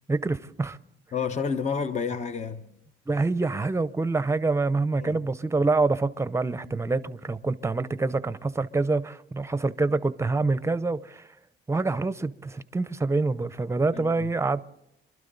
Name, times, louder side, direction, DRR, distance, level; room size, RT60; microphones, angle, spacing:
voice 1, 0.1-0.8 3.1-11.2 11.7-14.6, right 3 dB, 15° right, 0.7 m, -26 dB
voice 2, 1.1-2.8 5.0-5.2 13.9-14.3, left 6 dB, 35° left, 0.8 m, -30 dB
26.5 x 12.5 x 4.0 m
cardioid pair, 90°, 20 cm